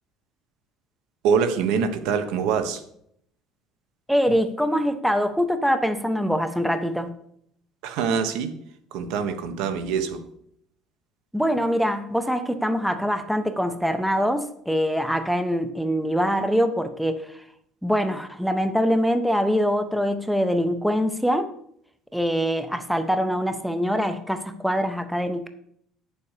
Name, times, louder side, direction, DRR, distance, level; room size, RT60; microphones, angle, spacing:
voice 1, 1.2-2.8 7.8-8.5 8.9-10.2, right 6 dB, 70° right, 9 dB, 1.2 m, -24 dB
voice 2, 4.1-7.1 11.3-17.4 17.8-21.5 22.1-25.5, equal, ahead, 9 dB, 0.5 m, -24 dB
9.6 x 7.0 x 5.0 m, 0.70 s
cardioid pair, 180°, 0 cm